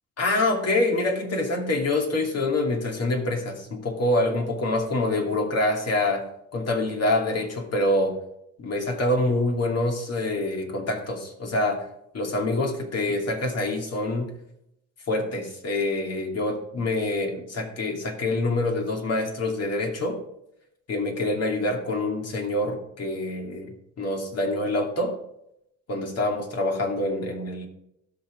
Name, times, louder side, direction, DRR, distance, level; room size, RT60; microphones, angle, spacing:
voice 1, 0.2-6.2 6.5-8.2 8.6-11.9 12.1-14.3 15.1-20.2 20.9-23.7 24.0-25.2 25.9-27.7, left 2 dB, 55° left, 2 dB, 2.7 m, -26 dB
17.0 x 5.9 x 3.6 m, 0.80 s
cardioid pair, 90°, 30 cm